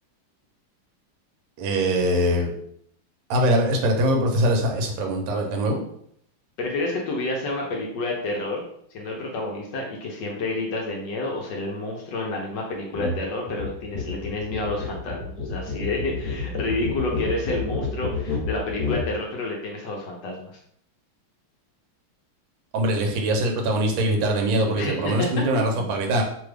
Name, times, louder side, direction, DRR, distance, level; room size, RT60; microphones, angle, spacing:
voice 1, 1.6-2.5 3.3-5.8 22.7-26.2, right 1 dB, 70° right, 2 dB, 1.3 m, -22 dB
voice 2, 6.6-8.6 8.9-20.6 24.7-25.3, left 2 dB, 75° left, -1 dB, 1.1 m, -29 dB
sound 1, 12.9-13.2 13.5-19.1, left 4 dB, 50° left, 1.3 m, -29 dB
3.4 x 2.3 x 3.2 m, 0.68 s
omnidirectional pair, 2.4 m